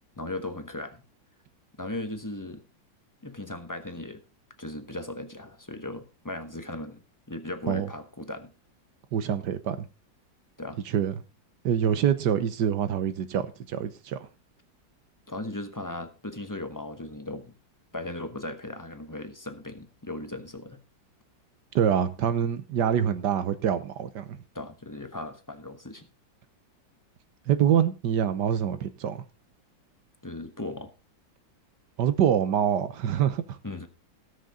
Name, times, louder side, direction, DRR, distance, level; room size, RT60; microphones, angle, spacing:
voice 1, 0.2-1.0 1.8-2.6 3.2-4.2 4.6-7.0 7.3-8.5 10.6-10.8 15.3-17.6 17.9-20.8 24.5-26.1 30.2-30.9 33.6-33.9, left 2 dB, 15° left, 0.9 m, -37 dB
voice 2, 9.1-9.9 10.9-11.1 11.6-14.2 21.7-24.4 27.5-29.2 32.0-33.6, right 9 dB, 70° right, 1.5 m, -25 dB
18.0 x 6.6 x 3.8 m
omnidirectional pair, 2.0 m